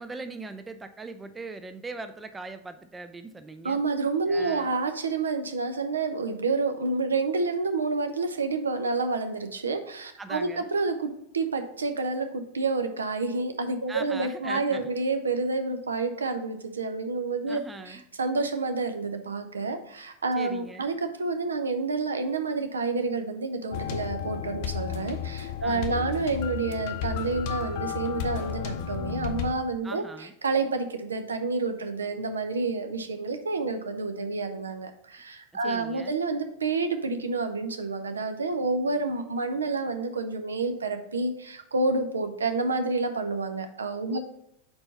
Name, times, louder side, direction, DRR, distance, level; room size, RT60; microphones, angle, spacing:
voice 1, 0.0-3.8 4.3-4.8 10.2-10.7 13.9-15.0 17.5-18.0 20.3-21.0 25.6-26.3 29.8-30.3 35.6-36.2 44.1-44.2, right 3 dB, 15° right, 11 dB, 0.3 m, -40 dB
voice 2, 3.6-11.1 11.3-44.2, right 3 dB, 70° right, 7 dB, 0.6 m, -29 dB
sound 1, 23.7-29.5, left 9 dB, 45° left, 0.6 m, -33 dB
4.4 x 4.2 x 5.5 m, 0.79 s
figure-of-eight pair, 90°, 0 cm